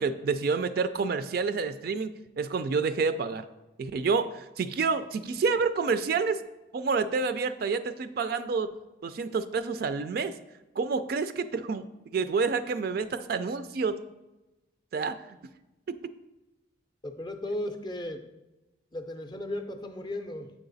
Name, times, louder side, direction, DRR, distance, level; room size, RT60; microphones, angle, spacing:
voice 1, 0.0-2.1 2.4-3.5 3.8-6.4 6.7-8.7 9.0-10.4 10.8-14.0 14.9-15.2 15.9-16.1, right 4 dB, 50° right, 12 dB, 0.3 m, -28 dB
voice 2, 17.0-18.2 18.9-20.5, left 1 dB, 20° left, 6 dB, 0.4 m, -35 dB
8.0 x 4.8 x 3.9 m, 1.0 s
head